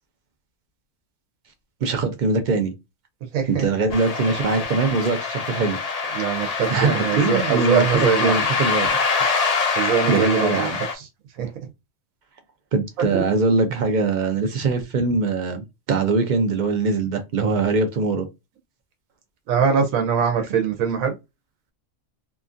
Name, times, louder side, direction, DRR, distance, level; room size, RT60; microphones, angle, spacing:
voice 1, 1.8-2.7 3.5-6.2 6.7-8.9 10.1-10.8 12.7-18.3, right 3 dB, 60° right, 0.5 m, -22 dB
voice 2, 3.3-3.6 6.1-8.4 9.7-10.7 11.0-11.1 11.4-11.5 13.1-13.2 19.5-21.1, right 7 dB, 80° right, 1.1 m, -22 dB
sound 1, 3.9-10.9, left 4 dB, 55° left, 0.4 m, -25 dB
2.8 x 2.5 x 2.5 m
omnidirectional pair, 1.4 m